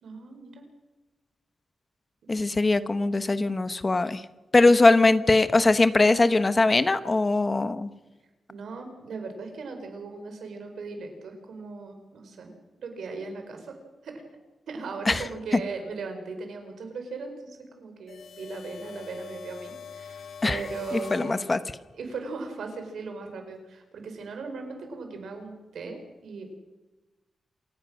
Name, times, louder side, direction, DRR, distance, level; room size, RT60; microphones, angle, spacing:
voice 1, 0.0-0.6 8.5-12.5 12.8-13.8 14.0-14.2 14.7-21.4 21.9-26.6, right 4 dB, 90° right, 5 dB, 4.9 m, -38 dB
voice 2, 2.3-4.2 4.5-7.9 15.1-15.2 15.5-15.6 20.4-20.6 20.9-21.6, left 2 dB, 25° left, 12 dB, 0.9 m, -21 dB
sound 1, 18.1-22.0, left 6 dB, 65° left, 1.6 m, -43 dB
27.5 x 17.0 x 6.4 m, 1.1 s
wide cardioid pair, 150°, 0 cm